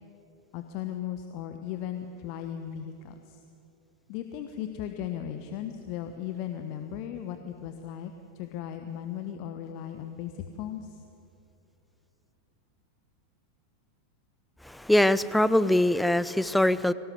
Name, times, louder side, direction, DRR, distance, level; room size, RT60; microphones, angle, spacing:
voice 1, 0.5-3.4 4.1-11.0, left 10 dB, 45° left, 7 dB, 1.1 m, -37 dB
voice 2, 14.6-16.9, left 1 dB, 5° left, 16 dB, 0.6 m, -23 dB
23.0 x 18.0 x 8.1 m, 2.8 s
figure-of-eight pair, 90°, 0 cm